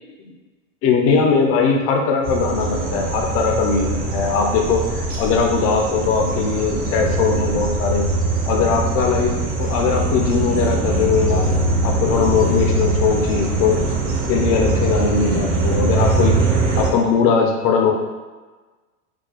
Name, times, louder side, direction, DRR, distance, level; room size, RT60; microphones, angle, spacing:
voice 1, 0.8-8.1 8.5-9.3 9.6-11.5 11.8-13.9 14.3-16.4 16.8-17.9, left 5 dB, 30° left, 2 dB, 0.5 m, -19 dB
sound 1, 2.2-16.9, right 2 dB, 20° right, 0.4 m, -22 dB
4.0 x 2.3 x 2.3 m, 1.3 s
hypercardioid pair, 110°, 44 cm